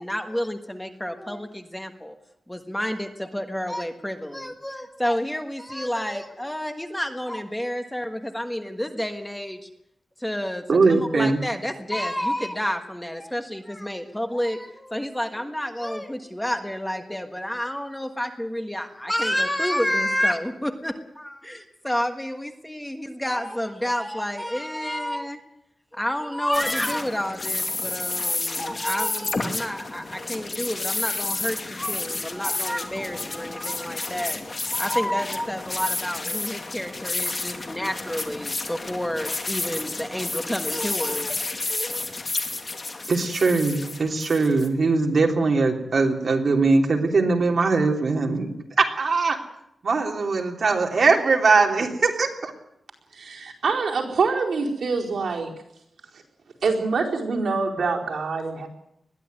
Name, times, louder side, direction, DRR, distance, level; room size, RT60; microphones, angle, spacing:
voice 1, 0.0-2.1 2.5-9.7 10.2-25.4 25.9-34.4 34.7-42.0, equal, 5° left, 5 dB, 1.5 m, -29 dB
voice 2, 10.7-11.4 43.1-48.5 48.8-49.4 49.8-52.5, right 3 dB, 55° right, 1 dB, 3.3 m, -21 dB
sound 1, 26.5-44.7, left 3 dB, 35° left, 2.5 m, -31 dB
voice 3, 53.1-55.5 56.6-58.7, right 4 dB, 80° right, -1 dB, 4.6 m, -25 dB
21.0 x 14.0 x 9.5 m, 0.78 s
wide cardioid pair, 175°, 0 cm